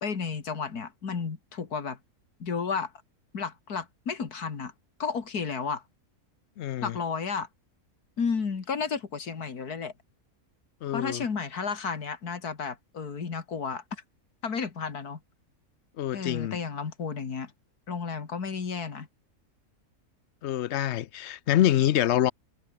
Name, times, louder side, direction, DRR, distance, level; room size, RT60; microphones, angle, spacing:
voice 1, 0.0-2.0 2.4-2.9 3.3-4.7 5.0-5.8 6.8-7.5 8.2-9.9 10.9-14.0 14.4-15.2 16.1-17.5 17.9-19.1, left 5 dB, 85° left, 2.7 m, -32 dB
voice 2, 6.6-7.0 10.8-11.2 16.0-16.6 20.4-22.3, left 12 dB, 65° left, 0.7 m, -26 dB
omnidirectional pair, 1.6 m